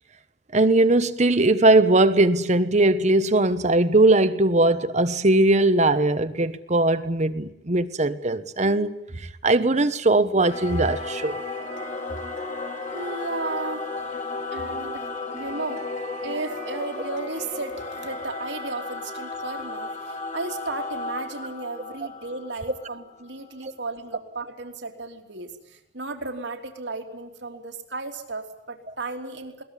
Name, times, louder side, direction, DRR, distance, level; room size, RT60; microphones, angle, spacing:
voice 1, 0.5-8.9 9.4-11.4 23.6-23.7, right 2 dB, 40° right, 1.2 m, -20 dB
Singing / Musical instrument, 10.4-23.3, left 3 dB, 45° left, 2.7 m, -34 dB
voice 2, 12.9-13.9 14.5-15.1 15.3-15.9 16.2-29.6, right 3 dB, 80° right, 3.4 m, -34 dB
21.5 x 19.5 x 10.0 m
head